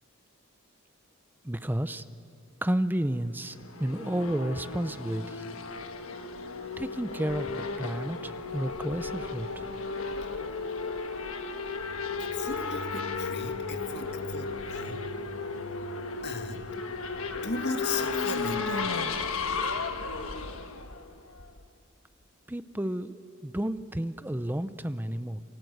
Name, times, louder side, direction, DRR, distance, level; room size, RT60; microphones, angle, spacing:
voice 1, 1.4-2.0 2.6-5.4 6.8-9.7 22.5-25.4, right 1 dB, 10° right, 12 dB, 0.6 m, -31 dB
Race car auto racing / Accelerating revving vroom, 3.5-21.6, left 4 dB, 70° left, 1.4 m, -34 dB
sound 1, 11.7-19.0, right 2 dB, 85° right, 1.6 m, -47 dB
voice 2, 12.1-15.0 16.2-16.6 17.4-18.8, left 4 dB, 50° left, 6 dB, 1.7 m, -37 dB
28.0 x 23.5 x 8.0 m, 2.6 s
head